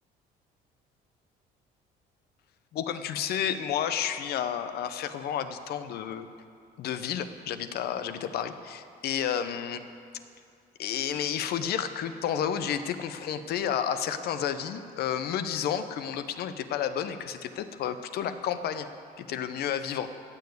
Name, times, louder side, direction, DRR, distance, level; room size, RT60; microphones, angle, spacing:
voice 1, 2.7-6.3 6.8-9.8 10.8-18.9 19.2-20.1, left 9 dB, 70° left, 10 dB, 0.8 m, -31 dB
14.5 x 7.0 x 8.0 m, 2.3 s
cardioid pair, 110°, 17 cm